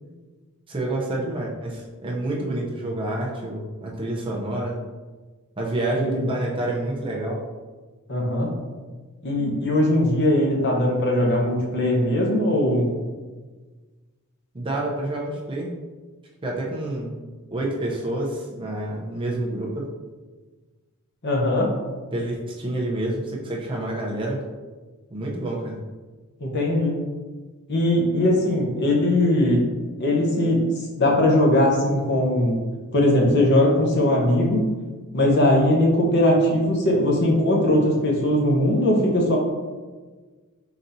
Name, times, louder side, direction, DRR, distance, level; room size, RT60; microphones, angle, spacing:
voice 1, 0.7-4.8 5.6-7.4 14.5-15.7 16.4-17.2 17.5-19.9 22.1-24.4 25.1-25.8, right 1 dB, 25° right, -2 dB, 0.6 m, -28 dB
voice 2, 8.1-8.5 9.2-12.9 21.2-21.7 26.4-27.0 27.7-29.6 30.0-30.6 31.0-32.6 32.9-34.7 35.1-39.4, left 1 dB, 50° left, -1 dB, 0.9 m, -20 dB
4.3 x 4.0 x 2.6 m, 1.3 s
head